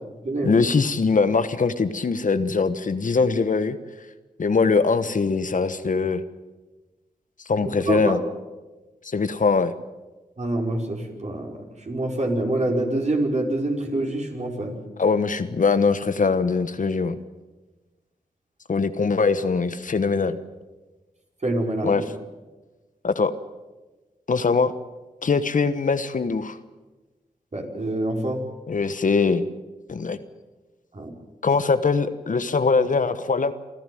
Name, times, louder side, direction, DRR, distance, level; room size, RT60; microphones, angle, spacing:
voice 1, 0.4-3.8 4.4-6.2 7.5-8.2 9.0-9.7 15.0-17.2 18.7-20.4 21.8-22.0 23.0-23.3 24.3-24.7 25.2-26.6 28.7-29.4 29.9-30.2 31.4-33.5, left 4 dB, 55° left, 11 dB, 1.2 m, -22 dB
voice 2, 7.6-8.2 10.4-14.8 21.4-22.1 27.5-28.4 30.9-31.1, right 1 dB, 50° right, 1 dB, 5.0 m, -26 dB
27.5 x 12.0 x 9.3 m, 1.2 s
cardioid pair, 40°, 16 cm